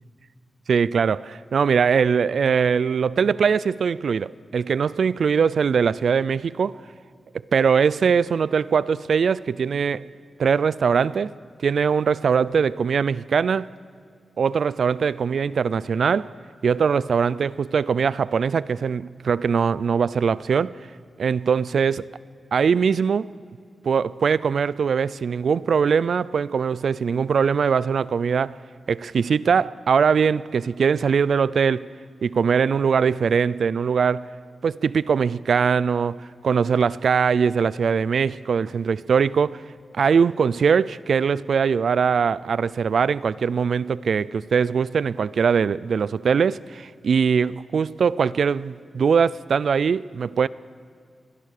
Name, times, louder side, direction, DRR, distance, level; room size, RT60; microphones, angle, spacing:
voice 1, 0.7-6.8 7.5-10.0 10.4-11.3 11.6-13.7 14.4-16.3 16.6-20.7 21.2-22.0 22.5-23.3 23.8-28.6 28.9-31.9 32.2-34.3 34.6-39.6 40.0-50.5, right 6 dB, 65° right, 0.5 m, -21 dB
28.0 x 21.5 x 6.7 m
wide cardioid pair, 135°, 0 cm